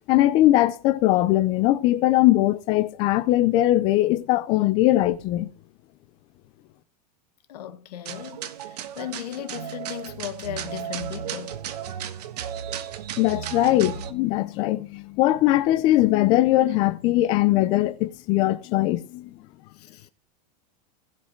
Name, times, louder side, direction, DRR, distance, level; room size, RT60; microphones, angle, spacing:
voice 1, 0.1-5.5 13.2-19.3, left 15 dB, 25° left, 0.5 m, -20 dB
voice 2, 7.5-11.6 15.3-15.4 19.7-20.1, left 11 dB, 75° left, 1.4 m, -37 dB
sound 1, 8.1-14.1, right 9 dB, 75° right, 1.4 m, -34 dB
16.5 x 5.6 x 4.5 m
supercardioid pair, 175°, 20 cm